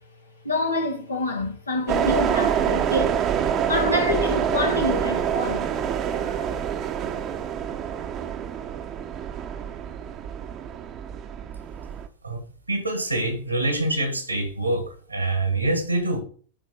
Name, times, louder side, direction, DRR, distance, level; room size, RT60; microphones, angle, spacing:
voice 1, 0.4-3.2 3.7-5.7 6.1-6.5, left 2 dB, 80° left, 2.0 m, -27 dB
sound 1, 1.9-12.1, right 8 dB, 30° right, 0.9 m, -26 dB
voice 2, 12.7-16.2, right 2 dB, 85° right, 2.1 m, -25 dB
10.0 x 3.8 x 5.2 m
figure-of-eight pair, 90°, 0 cm